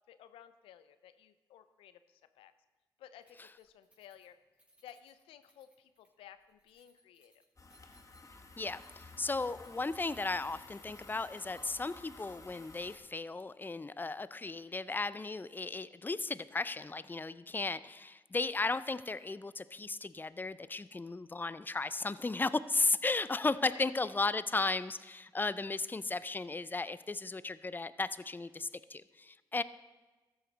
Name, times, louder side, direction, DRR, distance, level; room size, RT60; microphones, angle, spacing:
voice 1, 0.1-2.5 3.0-4.4 4.8-7.3 23.5-23.9, left 10 dB, 90° left, 12 dB, 0.4 m, -55 dB
Keys jangling, 3.2-12.2, right 1 dB, 15° right, 3.8 m, -69 dB
sound 1, 7.6-13.0, left 3 dB, 35° left, 1.2 m, -53 dB
voice 2, 8.6-29.6, left 3 dB, 20° left, 16 dB, 0.4 m, -35 dB
13.5 x 7.9 x 4.0 m, 1.2 s
supercardioid pair, 40°, 9 cm